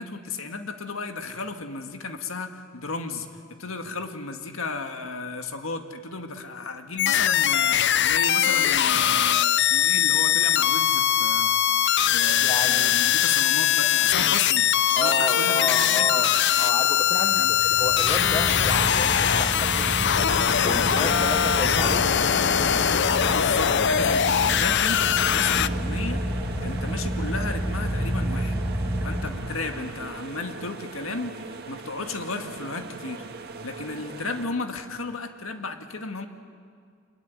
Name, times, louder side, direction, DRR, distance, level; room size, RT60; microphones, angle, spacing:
voice 1, 0.0-3.3 3.6-11.5 12.1-14.7 15.0-16.1 17.4-17.5 23.3-26.2 26.6-28.6 29.0-33.2 33.6-36.3, left 3 dB, 80° left, 6 dB, 1.9 m, -34 dB
sound 1, 7.0-25.7, left 10 dB, 60° left, 0.6 m, -21 dB
voice 2, 12.4-12.9 14.9-20.1 20.6-22.3, left 2 dB, 25° left, 5 dB, 1.2 m, -31 dB
Car / Idling, 17.1-29.9, equal, 10° right, 2.4 m, -30 dB
sound 2, 18.7-34.5, right 3 dB, 50° right, 1.8 m, -39 dB
26.0 x 22.0 x 9.4 m, 2.1 s
head